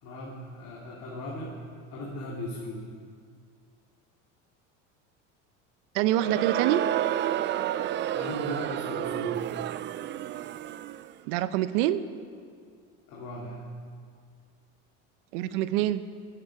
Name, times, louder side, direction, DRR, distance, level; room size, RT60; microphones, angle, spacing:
voice 1, 0.0-1.6 1.9-2.9 8.1-9.5 13.1-13.7, left 1 dB, 55° left, -4 dB, 2.9 m, -38 dB
voice 2, 5.9-6.8 11.3-12.0 15.3-16.0, right 13 dB, 75° right, 13 dB, 0.8 m, -25 dB
Crowd, 6.1-11.1, right 12 dB, 30° right, 0.4 m, -30 dB
26.5 x 8.9 x 4.9 m, 2.2 s
supercardioid pair, 100°, 36 cm